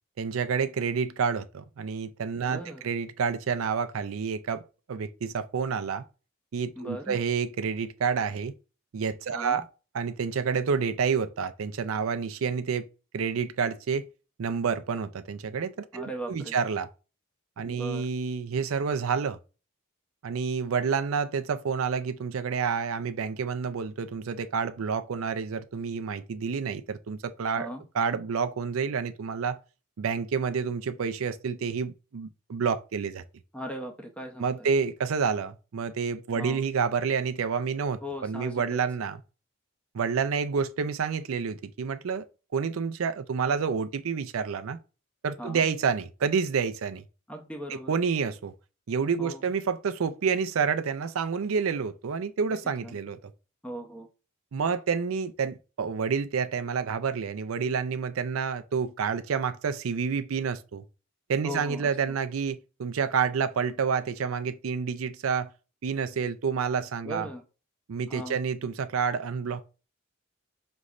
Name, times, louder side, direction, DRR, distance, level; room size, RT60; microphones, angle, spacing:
voice 1, 0.2-4.6 4.9-6.0 6.5-8.5 8.9-9.6 9.9-12.9 13.1-14.1 14.4-16.9 17.6-19.4 20.2-27.7 27.9-29.6 30.0-33.2 34.4-39.2 39.9-42.3 42.5-44.8 45.2-47.0 47.7-48.5 48.9-53.3 54.5-60.8 61.3-65.5 65.8-67.3 67.9-69.7, right 6 dB, 80° right, 0.4 m, -29 dB
voice 2, 2.4-2.8 6.8-7.2 9.3-9.6 15.9-16.6 17.6-18.1 27.6-27.8 33.5-34.7 36.3-36.6 38.0-38.8 45.4-45.7 47.3-47.9 49.2-49.4 52.5-53.0 53.6-54.1 61.4-61.9 67.0-67.4 68.1-68.4, equal, 5° left, 0.7 m, -38 dB
5.2 x 3.2 x 2.4 m
head